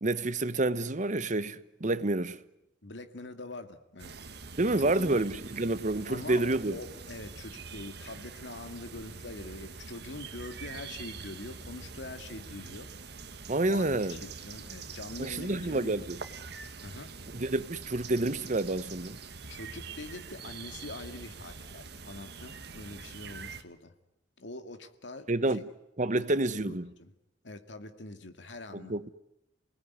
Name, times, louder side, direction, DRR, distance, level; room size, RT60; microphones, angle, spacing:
voice 1, 0.0-2.4 4.6-6.8 13.5-14.2 15.2-16.2 17.3-19.2 25.3-25.6 26.0-26.9 28.9-29.1, right 2 dB, 40° right, 1.0 m, -29 dB
voice 2, 2.8-4.1 4.8-5.2 6.1-12.9 13.7-16.0 16.8-17.1 19.5-23.9 24.4-25.6 26.1-27.1 27.4-28.9, left 2 dB, 70° left, 2.3 m, -44 dB
sound 1, 4.0-23.6, right 4 dB, 60° right, 1.7 m, -45 dB
29.0 x 19.5 x 9.7 m
head